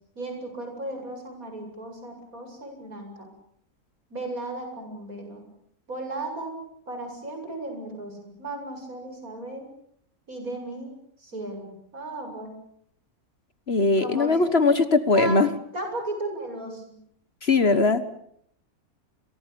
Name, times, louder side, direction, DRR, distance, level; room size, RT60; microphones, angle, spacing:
voice 1, 0.2-3.3 4.1-5.4 5.9-6.5 6.9-9.7 10.3-10.9 11.2-12.5 14.0-14.4 15.1-15.4 15.7-17.0, right 2 dB, 70° right, 4 dB, 8.6 m, -35 dB
voice 2, 13.7-15.5 17.4-18.0, left 3 dB, 45° left, 12 dB, 1.6 m, -20 dB
30.0 x 24.0 x 7.1 m, 0.68 s
omnidirectional pair, 1.5 m